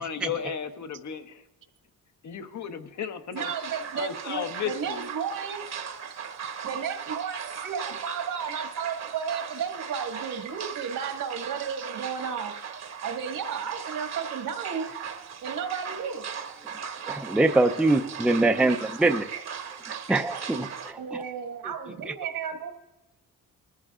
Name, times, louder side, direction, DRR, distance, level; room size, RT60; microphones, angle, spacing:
voice 1, 0.0-1.4 2.2-3.5 4.0-5.1, left 7 dB, 60° left, 7 dB, 1.0 m, -34 dB
voice 2, 3.3-5.6 6.6-12.5 13.0-14.9 15.4-16.2 21.0-22.7, right 7 dB, 80° right, 4 dB, 1.8 m, -33 dB
sound 1, 3.4-20.9, right 7 dB, 55° right, 1.1 m, -38 dB
voice 3, 17.1-19.3 19.9-21.2 22.1-22.2, right 2 dB, 5° right, 6 dB, 0.5 m, -24 dB
21.0 x 14.0 x 2.4 m, 1.0 s
cardioid pair, 120°, 33 cm